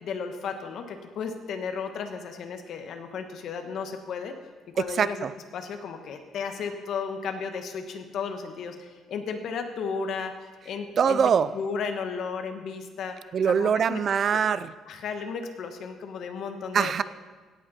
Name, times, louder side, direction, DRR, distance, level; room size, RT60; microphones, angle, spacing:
voice 1, 0.0-4.4 4.7-5.2 5.5-10.3 10.6-11.2 11.5-13.2 13.6-14.0 14.3-14.4 14.9-16.9, left 5 dB, 55° left, 6 dB, 1.2 m, -34 dB
voice 2, 5.0-5.3 11.0-11.5 13.3-14.7 16.7-17.0, right 7 dB, 40° right, 16 dB, 0.3 m, -23 dB
17.0 x 8.0 x 4.2 m, 1.4 s
cardioid pair, 155°, 0 cm